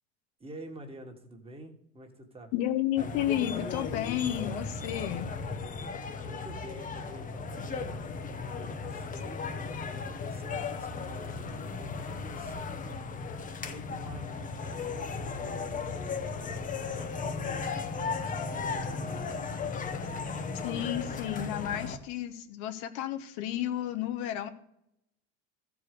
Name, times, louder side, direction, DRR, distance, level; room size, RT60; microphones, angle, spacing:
voice 1, 0.4-2.5 6.2-9.4 9.9-13.0 13.6-19.6, right 1 dB, 15° right, 4 dB, 1.7 m, -49 dB
voice 2, 2.5-5.3 20.6-24.5, left 12 dB, 65° left, 8 dB, 1.1 m, -32 dB
sound 1, 3.0-22.0, left 4 dB, 25° left, 0.9 m, -36 dB
13.5 x 4.8 x 6.7 m, 0.78 s
supercardioid pair, 110°, 33 cm